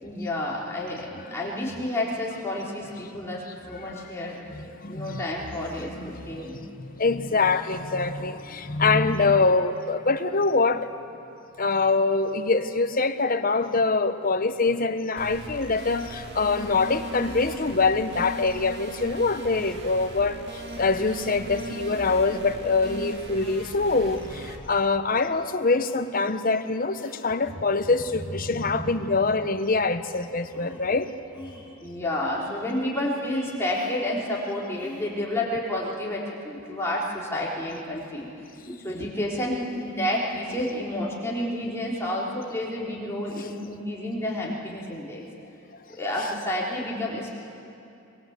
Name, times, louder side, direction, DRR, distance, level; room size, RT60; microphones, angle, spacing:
voice 1, 0.0-4.4 4.9-6.6 27.5-27.6 28.3-29.2 31.5-38.3 38.6-45.2 46.0-47.3, left 1 dB, 10° left, 3.7 m, -30 dB
voice 2, 4.5-5.2 5.8-10.9 11.6-31.1, left 3 dB, 40° left, 0.9 m, -24 dB
sound 1, 15.2-24.6, right 1 dB, 50° right, 2.1 m, -38 dB
sound 2, 25.8-26.0 27.0-27.2 27.9-28.5 30.1-30.2 30.5-31.0 31.3-31.8 32.1-32.6 33.7-34.0 34.7-35.1, left 1 dB, 5° right, 5.2 m, -45 dB
23.0 x 21.0 x 8.2 m
head